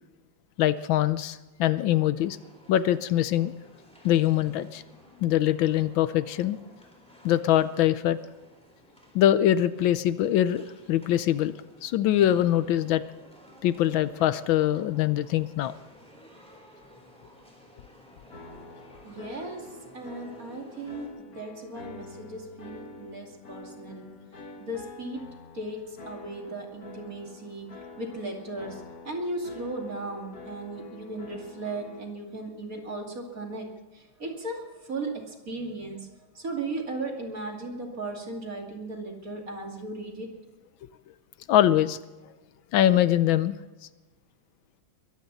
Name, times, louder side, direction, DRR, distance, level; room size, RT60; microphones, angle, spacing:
voice 1, 0.6-2.4 2.7-3.5 4.0-4.8 5.2-6.6 7.2-8.2 9.1-11.5 11.8-13.0 13.6-15.7 41.5-42.0 42.7-43.6, left 12 dB, 80° left, 14 dB, 1.4 m, -23 dB
sound 1, 2.2-21.1, equal, 5° left, 3.4 m, -54 dB
sound 2, 18.3-32.0, left 3 dB, 50° left, 2.0 m, -46 dB
voice 2, 19.0-24.2 24.6-25.3 25.5-27.7 28.0-33.7 33.9-36.1 36.3-40.3, right 2 dB, 45° right, 1 dB, 2.9 m, -36 dB
22.0 x 15.0 x 4.1 m, 1.2 s
omnidirectional pair, 2.2 m